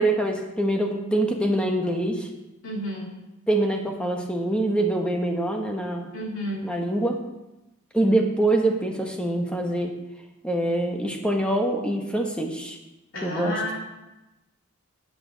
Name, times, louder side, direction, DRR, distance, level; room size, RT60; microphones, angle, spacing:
voice 1, 0.0-2.3 3.5-6.1 6.6-7.2 7.9-9.9 10.4-12.8 13.2-13.6, right 1 dB, 5° left, 2 dB, 1.2 m, -24 dB
voice 2, 2.6-3.1 6.1-6.7 13.1-13.8, equal, 60° left, -4 dB, 3.4 m, -31 dB
13.0 x 8.7 x 4.0 m, 1.0 s
head